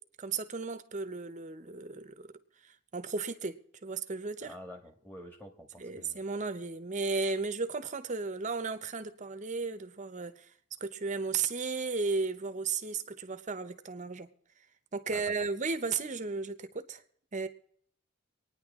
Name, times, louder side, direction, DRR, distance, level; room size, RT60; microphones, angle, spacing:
voice 1, 0.2-2.3 2.6-4.5 5.8-10.5 10.8-14.3 14.9-17.0 17.3-17.5, right 4 dB, 35° right, 0.7 m, -34 dB
voice 2, 4.4-6.2 15.1-15.2, equal, 10° left, 1.6 m, -48 dB
25.0 x 9.7 x 3.6 m
head